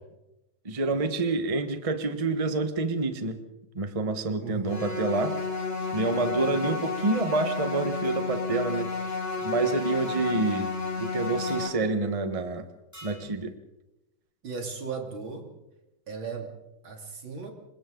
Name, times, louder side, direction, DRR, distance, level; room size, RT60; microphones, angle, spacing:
voice 1, 0.6-3.4 3.7-5.4 5.9-8.9 9.4-10.7 11.0-12.7 13.0-13.5, right 3 dB, 20° right, 8 dB, 1.2 m, -27 dB
voice 2, 4.4-4.9 14.4-15.5 16.1-16.5 16.8-17.5, right 5 dB, 75° right, 3 dB, 3.6 m, -36 dB
sound 1, 4.7-11.7, left 4 dB, 80° left, 3.8 m, -31 dB
sound 2, 8.0-8.3 9.4-9.5 11.5-11.7 12.9-13.3, equal, 5° left, 7.5 m, -49 dB
27.5 x 24.5 x 3.9 m, 0.94 s
omnidirectional pair, 2.2 m